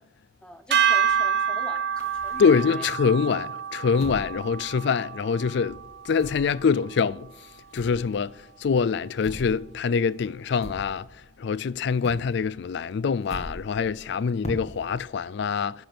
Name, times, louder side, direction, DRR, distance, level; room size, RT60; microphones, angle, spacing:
voice 1, 0.4-2.9 3.3-3.4, left 1 dB, 5° left, 0.8 m, -43 dB
sound 1, 0.7-2.9 3.3-5.4 5.7-11.4 11.6-15.0, equal, 35° left, 1.8 m, -43 dB
sound 2, 0.7-7.0, right 7 dB, 65° right, 0.9 m, -28 dB
voice 2, 2.4-5.8 6.1-7.3 7.7-8.3 8.6-11.0 11.4-15.7, left 5 dB, 65° left, 0.4 m, -24 dB
11.5 x 6.0 x 8.7 m
head